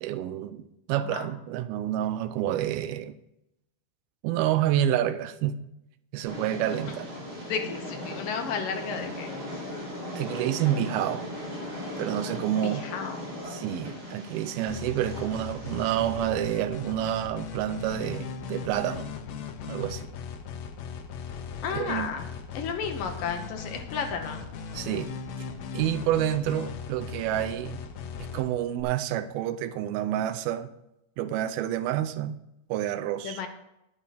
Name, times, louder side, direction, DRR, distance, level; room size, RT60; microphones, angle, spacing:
voice 1, 0.0-3.2 4.2-5.6 6.1-7.1 10.2-11.3 12.0-12.9 13.5-19.1 19.7-20.1 21.7-22.1 24.7-25.1 25.7-27.8 28.2-30.7 31.2-32.4 32.7-33.4, right 12 dB, 80° right, 12 dB, 2.5 m, -28 dB
voice 2, 1.0-1.3 7.4-9.3 12.6-13.2 21.6-22.3 22.5-24.4 33.2-33.5, left 6 dB, 70° left, 5 dB, 2.5 m, -33 dB
Train, 6.3-16.3, left 1 dB, 50° right, 6.2 m, -38 dB
sound 1, 14.7-28.8, left 6 dB, 90° left, 1.5 m, -38 dB
11.0 x 10.5 x 4.2 m, 0.84 s
omnidirectional pair, 4.5 m